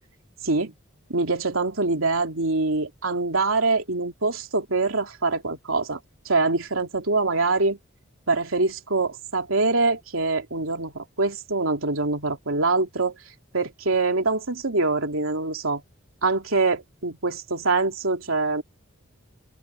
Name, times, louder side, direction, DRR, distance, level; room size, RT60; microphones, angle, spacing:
voice 1, 1.1-6.0 6.2-7.8 8.3-13.2 13.5-15.8 16.2-18.6, right 3 dB, 85° right, 3.0 m, -24 dB
open air
head